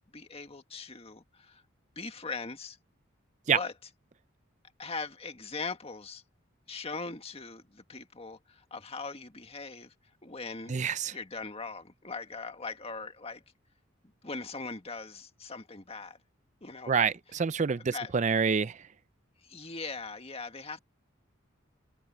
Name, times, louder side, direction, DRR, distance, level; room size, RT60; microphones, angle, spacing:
voice 1, 0.0-1.6 2.0-2.8 3.5-3.7 4.8-6.2 6.7-9.9 10.2-10.7 11.1-13.4 14.2-16.2 16.6-17.2 17.8-18.1 19.4-20.8, left 4 dB, 30° left, 1.8 m, -40 dB
voice 2, 10.7-11.1 16.9-18.8, right 6 dB, 35° right, 0.5 m, -27 dB
open air
head